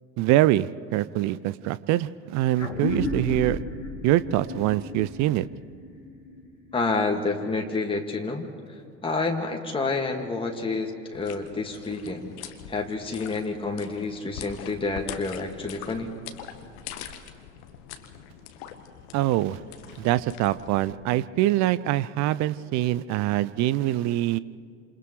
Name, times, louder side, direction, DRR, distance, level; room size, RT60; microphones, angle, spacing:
voice 1, 0.2-3.6 4.0-5.4 19.1-19.6 20.0-24.4, right 15 dB, 45° right, 17 dB, 0.6 m, -24 dB
sound 1, 2.6-7.5, left 1 dB, 90° left, 2.9 m, -33 dB
voice 2, 6.7-12.2 12.7-16.1, left 3 dB, 15° left, 1 dB, 2.2 m, -29 dB
sound 2, 11.1-20.9, left 9 dB, 65° left, 1.4 m, -43 dB
29.5 x 27.5 x 3.3 m, 2.3 s
figure-of-eight pair, 65°, 37 cm